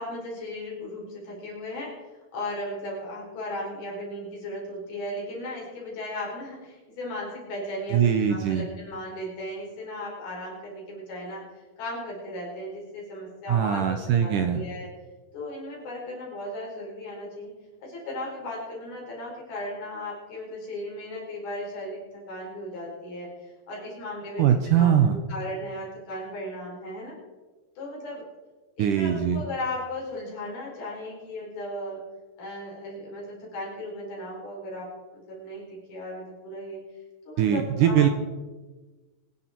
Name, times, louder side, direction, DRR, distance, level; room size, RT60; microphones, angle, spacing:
voice 1, 0.0-1.9 2.3-11.4 11.8-14.9 15.3-17.5 17.8-27.1 27.8-28.2 28.8-32.0 32.4-34.9 35.1-36.8 37.3-38.1, left 1 dB, 70° left, -3 dB, 6.5 m, -36 dB
voice 2, 7.9-8.7 13.5-14.6 24.4-25.2 28.8-29.4 37.4-38.1, right 9 dB, 75° right, 8 dB, 2.0 m, -21 dB
24.0 x 10.0 x 4.5 m, 1.3 s
omnidirectional pair, 4.5 m